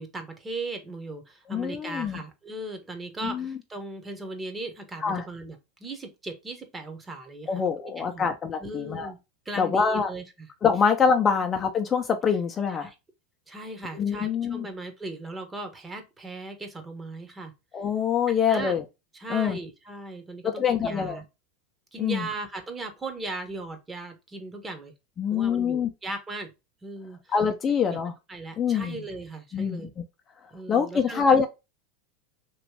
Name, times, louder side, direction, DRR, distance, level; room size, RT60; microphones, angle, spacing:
voice 1, 0.0-8.3 8.6-9.2 9.4-10.5 11.4-11.5 12.8-12.9 13.5-17.5 18.5-18.7 19.1-21.2 21.9-24.9 25.3-26.5 26.8-27.3 27.9-28.0 28.3-29.9 30.5-31.5, right 2 dB, 20° right, 1.0 m, -38 dB
voice 2, 1.5-2.2 3.2-3.6 5.0-5.2 7.5-9.1 9.6-10.1 10.6-12.9 13.9-14.7 17.7-18.8 19.3-19.6 20.4-21.2 22.0-22.3 25.2-25.9 27.3-28.1 28.6-29.0 29.5-29.9 30.7-31.5, left 6 dB, 30° left, 0.5 m, -25 dB
3.1 x 2.9 x 2.8 m
hypercardioid pair, 90°, 0 cm